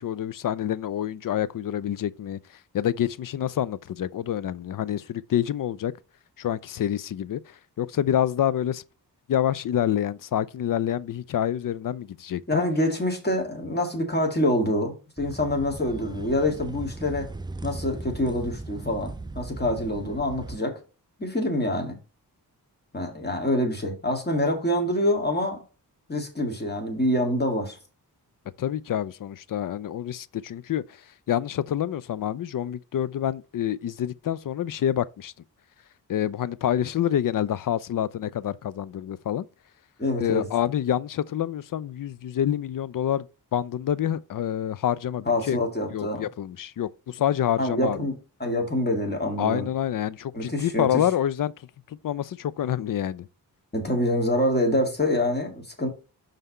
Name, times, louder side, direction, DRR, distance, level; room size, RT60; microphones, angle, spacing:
voice 1, 0.0-2.4 2.7-5.9 6.4-8.8 9.3-12.6 28.6-30.8 31.3-35.3 36.1-39.5 40.2-43.3 43.5-45.6 45.9-48.0 49.4-51.5 51.9-53.3, left 10 dB, 55° left, 0.5 m, -27 dB
voice 2, 12.5-17.3 17.6-20.8 21.2-22.0 22.9-25.6 26.1-27.8 40.0-40.5 45.3-46.2 47.6-48.1 48.4-49.7 50.3-51.0 53.7-55.9, left 1 dB, 25° left, 2.0 m, -26 dB
sound 1, 15.2-20.6, right 2 dB, 10° right, 0.3 m, -38 dB
5.6 x 3.5 x 5.4 m
cardioid pair, 75°, 39 cm